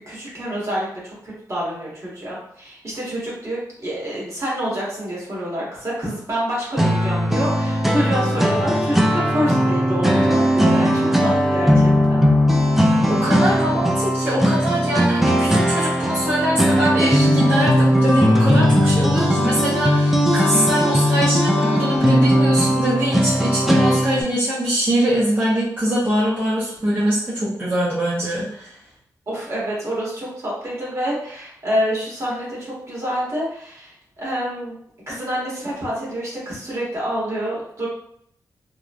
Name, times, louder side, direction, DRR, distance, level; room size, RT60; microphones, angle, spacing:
voice 1, 0.1-12.3 29.3-34.8 35.1-37.9, equal, 45° right, -6 dB, 1.3 m, -27 dB
sound 1, 6.8-24.2, equal, 5° right, 0.3 m, -18 dB
voice 2, 13.1-28.7, equal, 25° right, -10 dB, 0.8 m, -23 dB
3.0 x 2.2 x 2.5 m, 0.69 s
cardioid pair, 90°, 7 cm